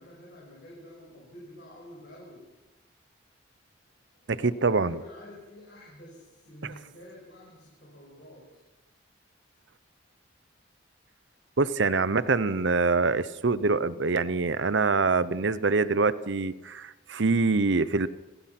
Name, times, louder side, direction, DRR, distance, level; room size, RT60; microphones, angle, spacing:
voice 1, 0.0-2.5 4.1-8.5, left 1 dB, 55° left, -4 dB, 6.1 m, -48 dB
voice 2, 4.4-5.0 6.6-6.7 11.6-18.1, right 3 dB, 70° right, 16 dB, 0.7 m, -25 dB
27.5 x 16.0 x 5.9 m, 1.1 s
head